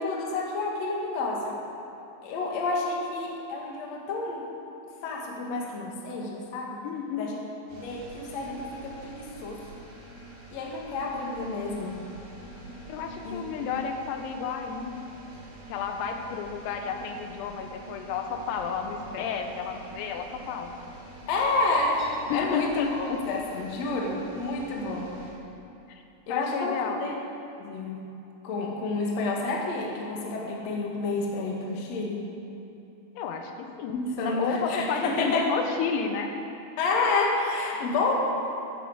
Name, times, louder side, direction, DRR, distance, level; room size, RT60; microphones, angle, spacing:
voice 1, 0.0-1.6 2.2-4.5 5.0-6.8 7.2-7.4 7.7-9.6 10.5-12.0 13.2-13.6 21.3-22.0 22.3-25.1 26.3-27.1 27.6-28.0 28.4-32.3 33.9-35.5 36.8-38.1, left 3 dB, 50° left, -2 dB, 2.2 m, -29 dB
voice 2, 6.8-7.3 12.9-15.2 15.7-20.8 22.3-23.2 25.9-26.0 26.3-27.0 33.2-34.0 34.3-36.3, left 6 dB, 85° left, 4 dB, 3.8 m, -31 dB
sound 1, 7.7-25.3, right 1 dB, 55° right, 5.5 m, -46 dB
14.0 x 10.5 x 8.1 m, 2.8 s
omnidirectional pair, 6.0 m